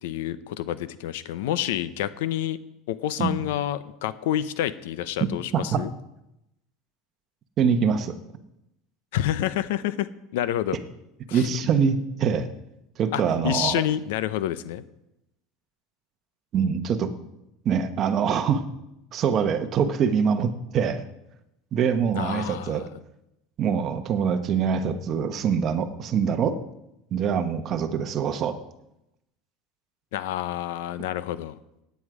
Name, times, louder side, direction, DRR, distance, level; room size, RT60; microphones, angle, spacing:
voice 1, 0.0-2.6 2.9-5.9 9.1-10.1 10.3-10.8 11.3-11.5 13.1-14.8 22.1-22.9 30.1-31.6, left 12 dB, 85° left, 15 dB, 0.8 m, -28 dB
voice 2, 7.6-8.2 11.3-12.5 13.0-13.8 16.5-17.1 17.6-18.6 19.1-21.0 21.7-22.9 23.6-26.6 27.1-28.6, right 7 dB, 35° right, 9 dB, 1.1 m, -24 dB
17.0 x 9.4 x 4.9 m, 0.87 s
supercardioid pair, 155°, 0 cm